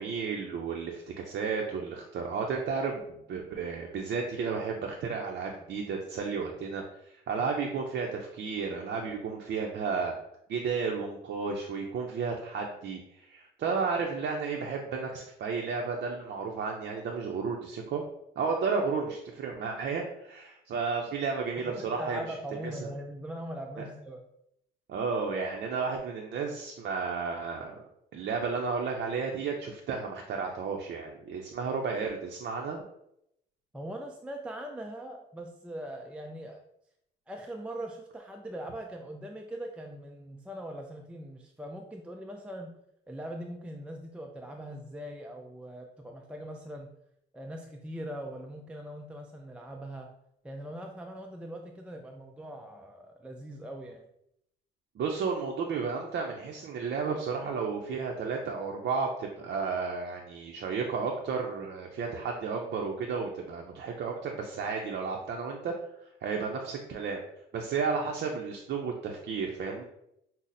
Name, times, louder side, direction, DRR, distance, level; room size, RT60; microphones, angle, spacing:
voice 1, 0.0-10.1 10.5-18.0 18.4-22.2 23.8-23.9 24.9-27.8 28.1-32.8 55.0-65.7 66.0-67.2 67.5-69.8, right 5 dB, 60° right, 1 dB, 0.5 m, -33 dB
voice 2, 21.7-24.2 33.7-36.6 37.3-42.7 43.1-46.9 47.3-50.1 50.4-54.1, right 1 dB, 5° right, 2 dB, 0.3 m, -41 dB
5.5 x 2.0 x 2.6 m, 0.79 s
cardioid pair, 90°, 20 cm